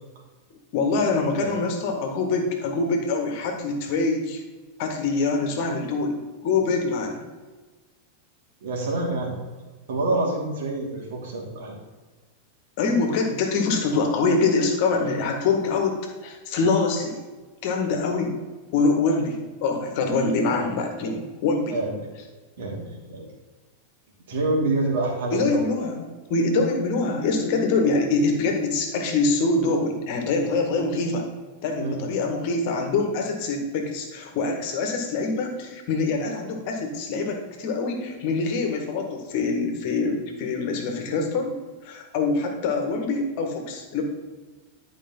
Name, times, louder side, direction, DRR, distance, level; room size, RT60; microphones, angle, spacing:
voice 1, 0.7-4.4 4.8-6.2 6.4-7.2 12.8-17.2 17.6-18.4 18.7-21.8 25.3-31.3 31.6-41.5 41.8-44.0, left 3 dB, 45° left, 3 dB, 1.9 m, -24 dB
voice 2, 8.6-9.3 9.9-11.8 21.7-22.0 22.6-23.3 24.3-25.7 31.8-32.0, right 2 dB, 55° right, -1 dB, 2.9 m, -27 dB
11.0 x 5.2 x 5.6 m, 1.3 s
figure-of-eight pair, 90°, 0 cm